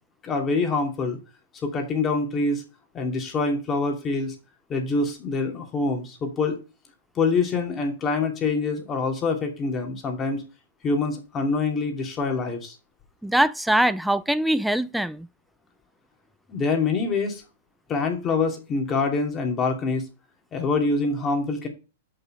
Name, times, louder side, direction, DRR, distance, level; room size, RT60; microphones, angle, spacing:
voice 1, 0.2-1.2 1.6-2.6 2.9-4.3 4.7-6.6 7.2-10.4 10.8-12.8 16.5-17.4 17.9-20.1 20.5-21.7, left 3 dB, 25° left, 2.5 m, -25 dB
voice 2, 13.2-15.3, right 1 dB, ahead, 0.4 m, -22 dB
6.7 x 5.6 x 5.5 m
hypercardioid pair, 120°, 0 cm